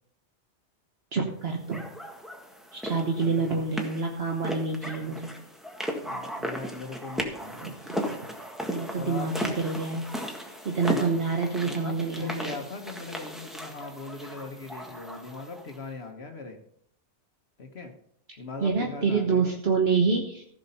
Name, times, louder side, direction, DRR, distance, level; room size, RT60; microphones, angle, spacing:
voice 1, 1.1-1.8 2.7-5.3 7.6-8.0 8.7-10.1 10.6-12.5 18.6-20.4, right 4 dB, 60° right, 1 dB, 1.5 m, -27 dB
sound 1, 1.7-15.8, equal, ahead, 1.6 m, -36 dB
voice 2, 3.0-3.4 6.0-7.9 8.9-9.3 10.8-11.2 11.6-16.6 17.6-17.9 18.4-19.6, left 3 dB, 65° left, 4 dB, 1.5 m, -40 dB
15.0 x 6.2 x 5.6 m, 0.66 s
omnidirectional pair, 1.2 m